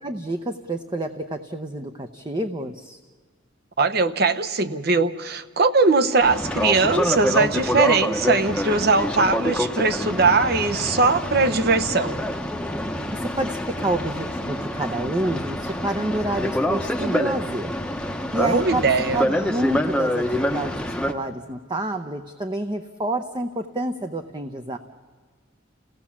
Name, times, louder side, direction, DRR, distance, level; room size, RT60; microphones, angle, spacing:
voice 1, 0.0-3.0 13.1-17.7 18.3-18.9 19.1-20.7 21.1-24.8, right 2 dB, 25° right, 6 dB, 0.7 m, -28 dB
voice 2, 3.8-12.2 18.5-19.2, right 3 dB, 50° right, 9 dB, 0.9 m, -20 dB
Boat Water vehicle, 6.2-21.1, left 1 dB, 5° left, 0.9 m, -26 dB
29.5 x 17.0 x 7.3 m, 1.5 s
head